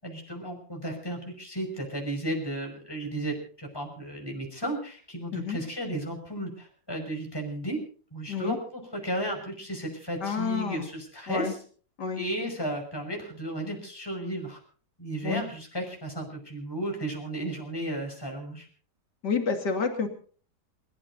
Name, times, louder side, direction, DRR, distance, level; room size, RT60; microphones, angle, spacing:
voice 1, 0.0-7.8 8.1-11.6 12.2-14.6 15.0-18.7, right 1 dB, 15° left, 1 dB, 5.7 m, -34 dB
voice 2, 10.2-10.9 11.3-11.5 12.0-12.2 15.2-15.4 19.2-20.1, left 5 dB, 75° left, 5 dB, 3.2 m, -29 dB
28.5 x 15.0 x 2.7 m, 0.42 s
omnidirectional pair, 1.9 m